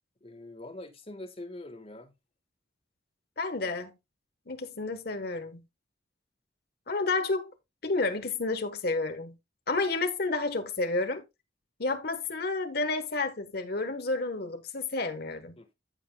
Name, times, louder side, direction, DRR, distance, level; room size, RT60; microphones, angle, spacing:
voice 1, 0.2-2.1 15.6-15.7, left 2 dB, 30° left, 1.4 m, -44 dB
voice 2, 3.4-4.0 4.5-5.6 6.9-7.5 7.8-9.4 9.7-11.2 11.8-15.6, left 3 dB, 55° left, 1.2 m, -30 dB
14.5 x 5.5 x 2.3 m
head